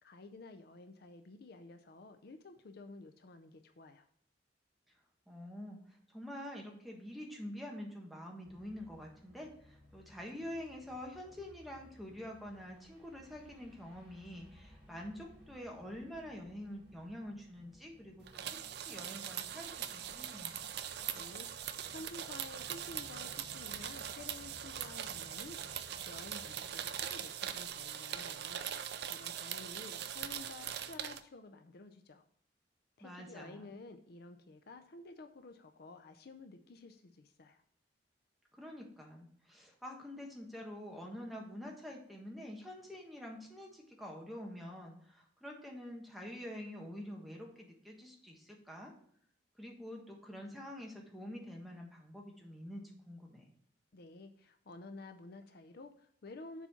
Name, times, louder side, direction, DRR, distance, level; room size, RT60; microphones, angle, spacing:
voice 1, 0.0-4.1 21.1-28.6 29.1-32.2 33.0-37.6 53.9-56.7, left 2 dB, 55° left, 8 dB, 0.5 m, -52 dB
voice 2, 5.3-20.6 33.0-33.7 38.5-48.9 49.6-53.5, left 1 dB, ahead, -1 dB, 1.4 m, -47 dB
sound 1, 8.4-27.2, equal, 30° right, 3.0 m, -59 dB
sound 2, 18.3-31.2, right 9 dB, 60° right, 0.5 m, -42 dB
7.0 x 4.2 x 5.7 m, 0.63 s
head